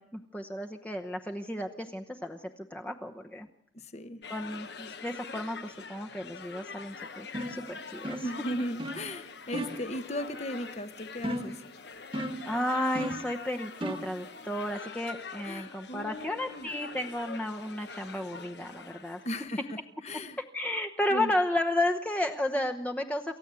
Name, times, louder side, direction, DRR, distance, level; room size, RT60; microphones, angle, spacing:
voice 1, 0.0-3.5 4.3-8.3 12.5-19.2 20.5-23.4, left 1 dB, 5° left, 3 dB, 0.8 m, -33 dB
voice 2, 3.7-4.2 8.2-11.6 15.4-16.7 19.2-19.8 20.0-20.4 21.1-21.3, equal, 35° left, 10 dB, 1.0 m, -37 dB
sound 1, 4.2-19.4, left 5 dB, 65° left, 1.2 m, -44 dB
Sneaking Around, 7.3-7.6 8.0-8.4 8.8-9.1 9.5-9.9 11.2-11.6 12.1-12.5 12.9-13.3 13.8-14.1, right 1 dB, 30° right, 1.3 m, -35 dB
28.0 x 14.5 x 8.2 m, 0.77 s
head